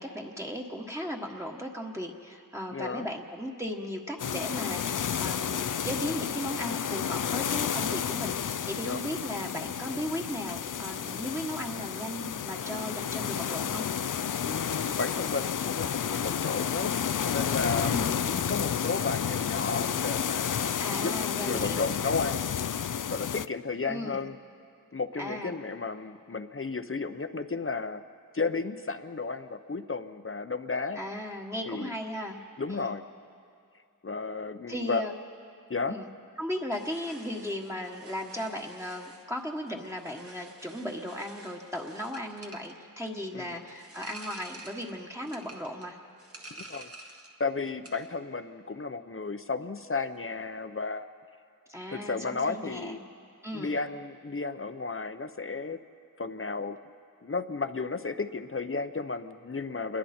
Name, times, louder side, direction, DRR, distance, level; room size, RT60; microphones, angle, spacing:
voice 1, 0.0-13.8 17.8-18.2 20.8-21.8 23.9-24.3 25.2-25.6 30.9-32.4 32.7-32.9 34.7-35.1 35.9-36.1 36.4-46.0 51.7-52.9 53.4-53.7, equal, 5° right, 0 dB, 1.4 m, -36 dB
voice 2, 2.7-3.1 8.8-9.0 14.4-17.0 17.2-21.1 21.4-22.6 23.1-24.3 24.9-28.0 28.3-31.0 31.7-31.9 32.6-33.0 34.0-35.0 35.7-36.0 43.3-43.6 46.6-46.9 47.4-51.1 51.9-53.0 53.5-55.8 56.2-56.8 57.2-60.0, left 4 dB, 35° left, 10 dB, 0.8 m, -33 dB
sound 1, 4.2-23.5, left 8 dB, 60° left, 0.5 m, -31 dB
sound 2, 36.7-47.4 47.7-48.2, right 2 dB, 40° right, 1.7 m, -49 dB
27.5 x 21.5 x 4.4 m, 2.4 s
wide cardioid pair, 70°, 36 cm